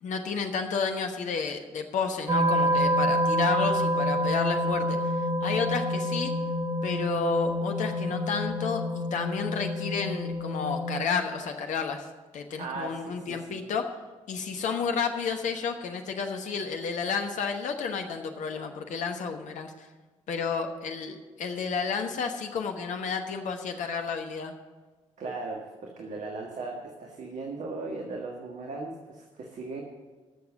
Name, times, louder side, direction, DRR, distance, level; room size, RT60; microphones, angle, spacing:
voice 1, 0.0-6.3 6.8-12.1 12.3-13.9 14.3-19.9 20.3-24.5, left 5 dB, 55° left, 5 dB, 1.1 m, -31 dB
sound 1, 2.3-10.9, equal, 25° right, 1.9 m, -27 dB
voice 2, 12.6-13.6 25.2-26.7 27.0-29.8, right 3 dB, 50° right, 1 dB, 1.6 m, -37 dB
13.0 x 7.0 x 8.1 m, 1.3 s
figure-of-eight pair, 40°, 15 cm